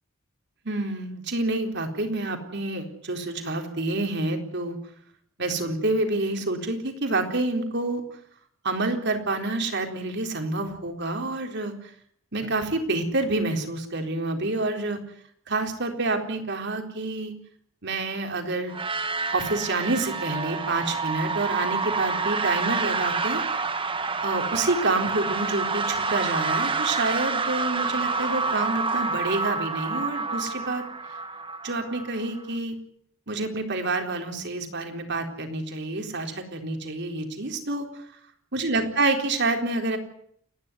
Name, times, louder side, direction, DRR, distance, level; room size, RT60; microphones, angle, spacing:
voice 1, 0.6-4.8 5.4-8.0 8.6-11.9 12.3-15.0 15.5-17.3 17.8-18.8 19.3-23.7 24.2-30.8 31.6-32.8 33.3-38.0 38.5-40.0, right 2 dB, 55° right, 5 dB, 4.0 m, -28 dB
sound 1, 18.7-32.4, right 4 dB, 25° right, 1.4 m, -28 dB
29.5 x 11.5 x 9.2 m, 0.66 s
head